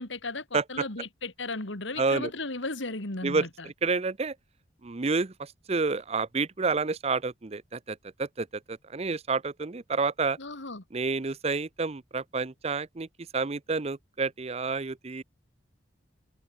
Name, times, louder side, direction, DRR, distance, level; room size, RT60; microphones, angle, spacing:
voice 1, 0.0-3.7 10.4-10.8, left 2 dB, 80° left, 2.9 m, -35 dB
voice 2, 0.5-0.8 2.0-2.3 3.2-3.5 3.8-4.3 4.8-10.4 10.9-13.1 13.3-15.2, right 4 dB, 35° right, 0.6 m, -29 dB
open air
head